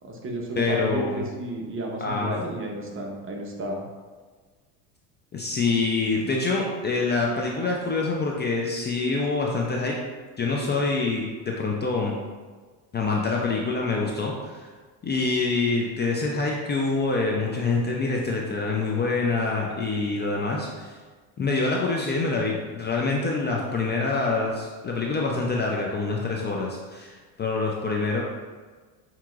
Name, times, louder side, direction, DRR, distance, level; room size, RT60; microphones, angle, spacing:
voice 1, 0.0-3.8, right 1 dB, 30° right, 0 dB, 0.9 m, -32 dB
voice 2, 0.6-1.2 2.0-2.3 5.3-9.9 10.4-12.1 12.9-14.7 15.0-21.0 21.4-28.2, left 3 dB, 25° left, -2 dB, 0.5 m, -26 dB
5.6 x 2.9 x 2.4 m, 1.4 s
supercardioid pair, 90°, 43 cm